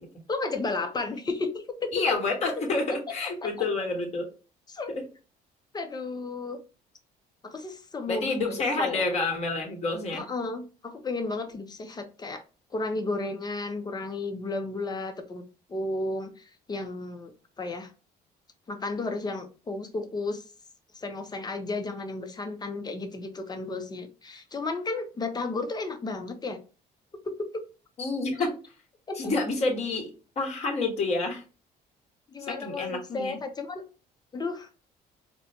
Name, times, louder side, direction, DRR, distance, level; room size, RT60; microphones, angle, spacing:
voice 1, 0.3-2.2 4.7-4.9 5.7-6.6 7.4-9.1 10.1-12.4 12.7-15.4 15.7-17.9 18.7-20.4 20.9-26.6 27.2-27.6 29.1-29.3 32.3-33.8 34.3-34.7, left 3 dB, 25° left, 7 dB, 0.6 m, -33 dB
voice 2, 1.9-4.3 4.9-5.0 8.1-10.2 28.0-28.5 29.1-31.4 32.5-33.4, left 3 dB, 40° left, 0 dB, 1.4 m, -28 dB
4.2 x 2.1 x 2.7 m, 0.34 s
cardioid pair, 110°, 17 cm